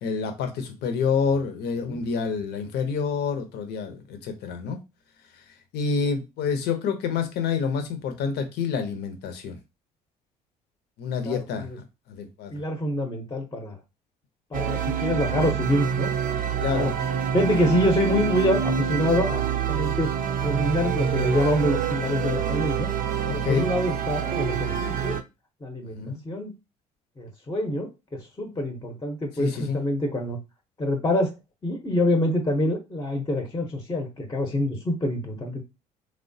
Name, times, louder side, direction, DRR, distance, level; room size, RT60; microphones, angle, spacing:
voice 1, 0.0-4.8 5.7-9.6 11.0-12.5 16.6-16.9 23.2-23.7 25.9-26.2 29.4-29.8, left 6 dB, 65° left, 0.7 m, -28 dB
voice 2, 11.2-11.8 12.5-13.8 14.5-16.1 16.7-17.0 17.3-20.1 20.4-22.9 23.3-25.2 25.6-26.5 27.2-30.4 30.8-31.3 31.6-35.6, left 1 dB, 20° left, 0.7 m, -26 dB
sound 1, 14.5-25.2, right 8 dB, 50° right, 0.5 m, -27 dB
3.1 x 2.1 x 2.6 m
hypercardioid pair, 65°, 18 cm